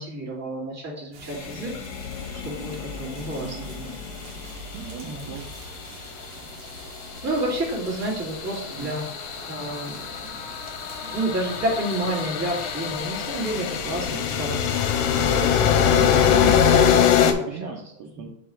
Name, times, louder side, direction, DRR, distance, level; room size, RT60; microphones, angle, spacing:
voice 1, 0.0-1.7 2.4-3.9 5.0-5.3 7.2-9.0 9.5-10.5 11.1-14.6 15.1-16.9 17.3-17.4 18.2-18.3, right 1 dB, 5° right, -7 dB, 1.8 m, -30 dB
sound 1, 1.1-15.5, right 3 dB, 55° right, 2.0 m, -43 dB
sound 2, 1.3-5.6 7.2-17.3, left 8 dB, 80° left, 2.0 m, -24 dB
voice 2, 4.7-5.5 8.8-9.0 15.9-18.3, right 7 dB, 75° right, 1 dB, 1.8 m, -35 dB
6.3 x 4.8 x 3.7 m, 0.79 s
omnidirectional pair, 3.5 m